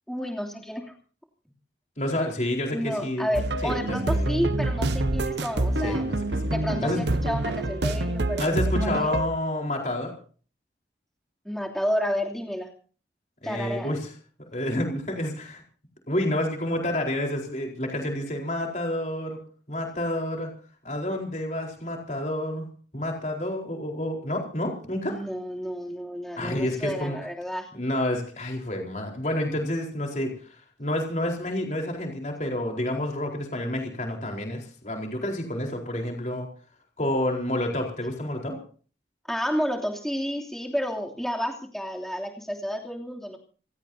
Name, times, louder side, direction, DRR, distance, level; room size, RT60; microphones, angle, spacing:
voice 1, 0.1-0.8 2.7-6.0 6.5-9.1 11.4-12.7 13.4-13.9 25.1-27.7 39.3-43.4, equal, ahead, 0 dB, 2.9 m, -31 dB
voice 2, 2.0-3.3 3.6-4.3 5.8-6.5 6.8-7.0 8.4-10.1 13.4-14.1 14.4-15.6 16.1-19.4 19.7-20.5 20.8-22.7 22.9-25.1 26.4-27.2 27.7-30.3 30.8-36.5 37.0-38.6, left 1 dB, 40° left, 1 dB, 4.3 m, -29 dB
sound 1, 3.3-9.3, right 2 dB, 75° right, 1.1 m, -27 dB
27.5 x 17.0 x 2.8 m, 0.41 s
head